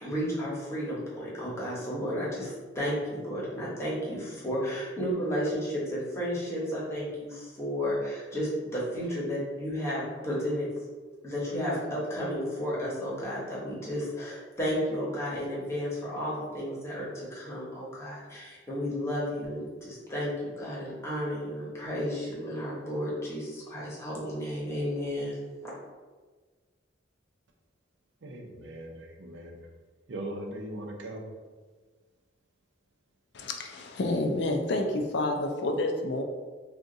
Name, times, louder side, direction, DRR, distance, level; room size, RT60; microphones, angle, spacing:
voice 1, 0.0-10.7 11.2-25.4, equal, 15° left, -6 dB, 1.0 m, -32 dB
voice 2, 28.2-29.7 30.1-31.3, right 1 dB, 75° right, 2 dB, 0.5 m, -39 dB
voice 3, 33.3-36.2, left 2 dB, 65° left, 3 dB, 0.4 m, -29 dB
2.6 x 2.4 x 3.8 m, 1.4 s
head